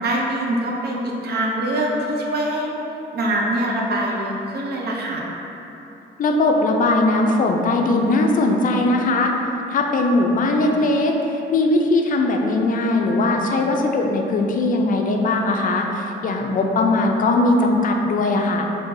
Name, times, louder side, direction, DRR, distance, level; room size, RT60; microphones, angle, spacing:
voice 1, 0.0-2.7 3.1-5.2, right 1 dB, 55° right, -1 dB, 0.6 m, -23 dB
voice 2, 6.2-9.3 9.7-18.7, left 2 dB, 45° left, 2 dB, 0.4 m, -19 dB
3.7 x 2.7 x 2.6 m, 3.0 s
cardioid pair, 90°, 20 cm